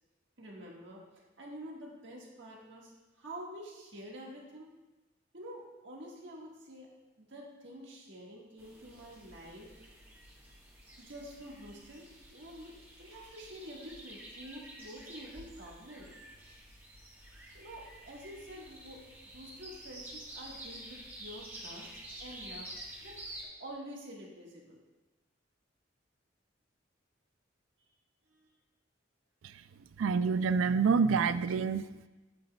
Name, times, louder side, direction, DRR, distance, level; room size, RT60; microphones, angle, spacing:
voice 1, 0.4-1.0 1.4-4.7 5.3-6.9 7.2-9.9 11.0-16.1 17.5-19.0 19.3-24.8 28.3-28.5, equal, 65° right, -2 dB, 1.5 m, -48 dB
sound 1, 8.6-23.4, right 1 dB, 10° right, 1.2 m, -49 dB
voice 2, 30.0-32.1, right 5 dB, 90° right, 13 dB, 0.3 m, -27 dB
9.1 x 8.0 x 2.2 m, 1.1 s
head